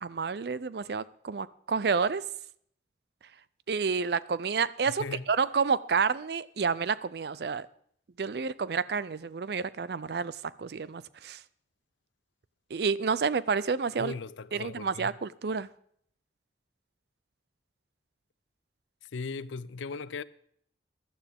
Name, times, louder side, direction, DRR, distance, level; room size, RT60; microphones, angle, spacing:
voice 1, 0.0-2.2 3.7-7.7 8.2-11.4 12.7-14.1 14.5-15.7, right 5 dB, 60° right, 0.5 m, -29 dB
voice 2, 4.9-5.3 14.0-15.1 19.0-20.2, left 4 dB, 90° left, 0.5 m, -38 dB
16.0 x 11.5 x 3.5 m
head